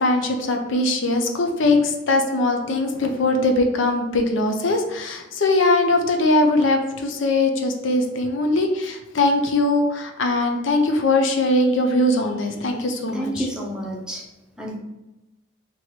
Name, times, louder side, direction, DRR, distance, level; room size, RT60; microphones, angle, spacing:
voice 1, 0.0-13.5, left 2 dB, 80° left, 4 dB, 0.6 m, -21 dB
voice 2, 13.1-14.2 14.6-14.8, right 1 dB, 5° right, -2 dB, 0.6 m, -29 dB
3.1 x 2.9 x 4.3 m, 1.0 s
head